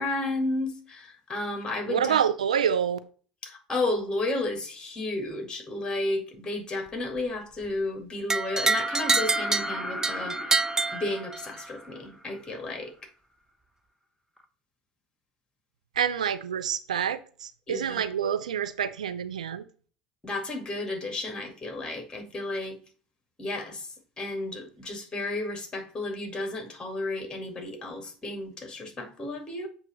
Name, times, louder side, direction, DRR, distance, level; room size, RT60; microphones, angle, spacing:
voice 1, 0.0-2.2 3.4-10.4 10.9-12.9 17.7-18.0 20.2-22.8 23.4-23.8 24.2-29.7, left 2 dB, 20° left, 2.0 m, -32 dB
voice 2, 1.9-3.0 16.0-19.6, right 8 dB, 90° right, 0.5 m, -27 dB
sound 1, 8.3-11.7, right 4 dB, 15° right, 0.4 m, -27 dB
sound 2, 8.7-12.5 14.4-14.5, left 1 dB, 5° left, 0.9 m, -36 dB
7.8 x 2.9 x 5.6 m
hypercardioid pair, 80°, 4 cm